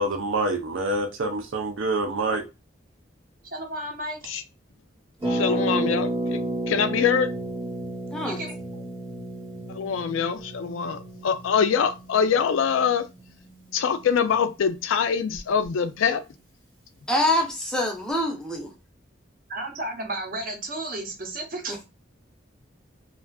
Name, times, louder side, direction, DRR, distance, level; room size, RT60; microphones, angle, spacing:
voice 1, 0.0-2.4, right 2 dB, 85° right, 0.5 m, -26 dB
voice 2, 3.5-4.2 8.2-8.8 19.5-21.8, right 1 dB, 45° right, 0.7 m, -33 dB
Harp, 5.2-14.8 15.1-15.2 15.3-15.7, right 1 dB, 20° right, 0.9 m, -32 dB
voice 3, 5.3-6.4 6.7-7.3 9.7-13.0 13.7-16.2, left 7 dB, 90° left, 0.4 m, -24 dB
voice 4, 17.1-18.7 21.7-21.8, left 1 dB, 5° left, 0.5 m, -25 dB
2.5 x 2.3 x 2.2 m
head